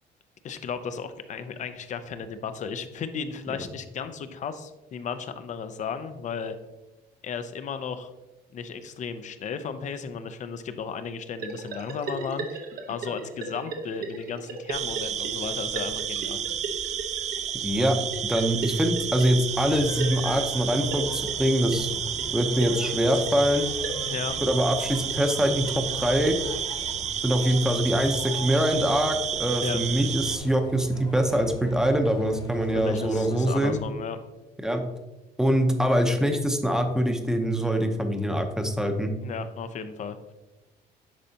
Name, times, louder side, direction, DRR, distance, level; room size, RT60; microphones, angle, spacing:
voice 1, 0.4-6.5 7.2-8.1 8.5-16.4 24.1-24.4 29.6-29.8 32.7-34.2 39.2-40.3, left 6 dB, 45° left, 10 dB, 0.6 m, -35 dB
sound 1, 11.4-26.7, right 3 dB, 65° right, 1.1 m, -38 dB
sound 2, 14.7-30.4, right 9 dB, 45° right, 0.4 m, -31 dB
voice 2, 17.6-18.0 18.2-21.9 22.3-23.7 24.4-26.4 27.2-33.8 34.6-34.8 35.4-39.1, equal, 5° right, 5 dB, 0.8 m, -24 dB
sound 3, 19.5-33.8, left 3 dB, 30° left, 1.1 m, -42 dB
10.0 x 4.1 x 2.8 m, 1.1 s
cardioid pair, 110°, 17 cm